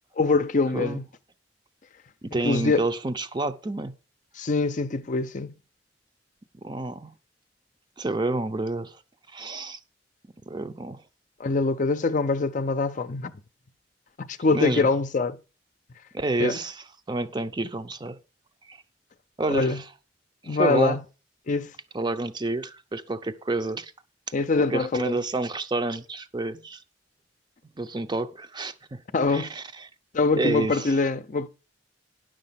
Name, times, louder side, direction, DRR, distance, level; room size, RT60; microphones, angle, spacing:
voice 1, 0.2-1.1 2.3-2.8 4.4-5.5 11.4-13.3 14.2-15.4 16.4-16.6 19.5-19.8 20.4-21.0 21.5-21.7 24.3-25.1 29.1-29.5 30.1-31.5, left 3 dB, 45° left, 0.6 m, -24 dB
voice 2, 2.2-3.9 6.6-7.1 8.0-9.0 9.3-9.8 10.5-11.0 14.5-14.9 16.1-18.2 18.7-18.8 19.4-19.9 20.4-21.0 21.9-23.9 24.6-26.8 27.8-29.0 29.3-29.9 30.3-31.0, right 2 dB, 25° right, 0.6 m, -29 dB
10.0 x 6.5 x 5.7 m
head